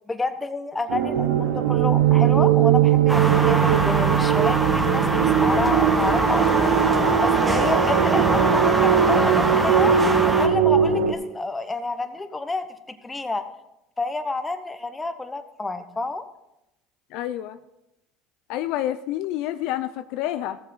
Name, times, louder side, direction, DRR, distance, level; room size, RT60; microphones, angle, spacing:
voice 1, 0.1-5.1 5.4-10.0 10.2-13.4 14.0-16.2, left 3 dB, 15° left, 9 dB, 1.1 m, -29 dB
sound 1, 0.9-11.1, right 9 dB, 80° right, 1.0 m, -20 dB
sound 2, 3.1-10.5, right 1 dB, 15° right, 1.6 m, -23 dB
voice 2, 17.1-17.6 18.5-20.6, left 13 dB, 70° left, 11 dB, 0.4 m, -28 dB
15.5 x 7.4 x 3.8 m, 0.89 s
supercardioid pair, 90°, 0 cm